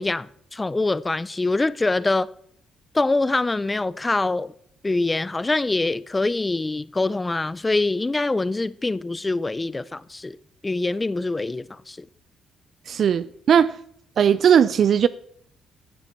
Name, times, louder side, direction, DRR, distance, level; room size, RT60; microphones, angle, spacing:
voice 1, 0.0-2.3 2.9-4.5 4.8-10.4 10.6-12.1, left 2 dB, 20° left, 0.4 m, -24 dB
voice 2, 12.9-13.8 14.2-15.1, right 8 dB, 60° right, 0.4 m, -18 dB
15.0 x 7.0 x 4.4 m
cardioid pair, 90°, 0 cm